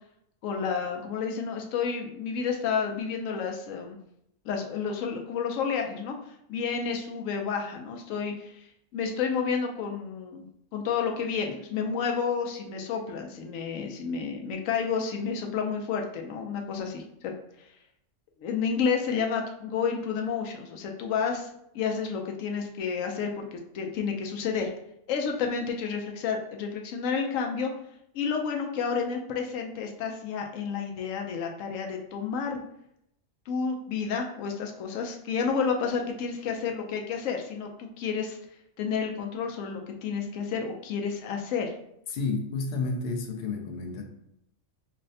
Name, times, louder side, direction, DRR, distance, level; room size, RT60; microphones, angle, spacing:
voice 1, 0.4-4.0 4.4-6.2 6.5-8.6 8.9-10.5 10.7-17.3 17.6-17.7 18.4-21.5 21.7-23.5 23.7-24.7 25.1-27.7 28.1-32.6 33.5-38.4 38.8-41.7, left 6 dB, 85° left, 2 dB, 1.0 m, -30 dB
voice 2, 42.1-44.0, left 3 dB, 60° left, 3 dB, 0.7 m, -31 dB
5.4 x 2.1 x 2.6 m, 0.76 s
omnidirectional pair, 1.3 m